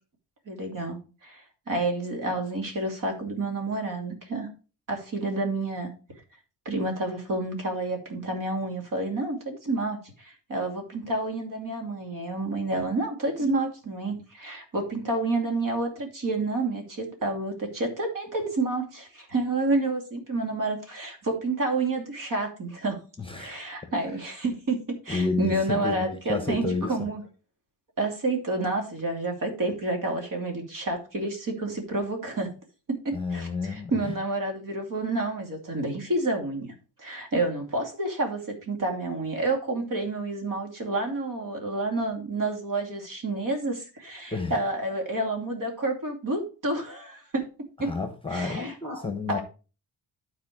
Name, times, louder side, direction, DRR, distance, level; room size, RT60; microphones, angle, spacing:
voice 1, 0.5-4.5 4.9-5.9 6.6-23.0 23.4-27.2 28.0-32.5 32.9-47.5 47.8-47.9 48.3-49.4, right 2 dB, 50° right, 3 dB, 2.7 m, -29 dB
voice 2, 23.2-23.5 23.8-23.9 25.1-27.1 33.1-34.1 44.3-44.6 47.8-49.4, left 3 dB, 10° left, 7 dB, 1.1 m, -30 dB
11.5 x 4.6 x 4.6 m, 0.34 s
cardioid pair, 135°, 43 cm